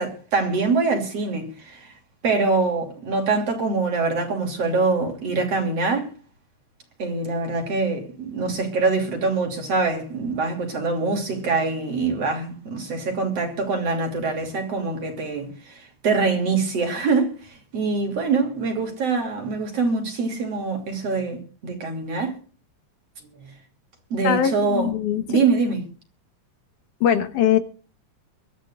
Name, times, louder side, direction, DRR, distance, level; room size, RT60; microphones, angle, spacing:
voice 1, 0.0-1.9 2.2-6.1 7.0-22.4 23.4-23.5 24.1-24.9 25.3-25.8, right 4 dB, 50° right, 3.9 m, -24 dB
voice 2, 24.2-25.4 27.0-27.6, left 9 dB, 70° left, 2.6 m, -21 dB
23.0 x 13.5 x 2.5 m
omnidirectional pair, 3.8 m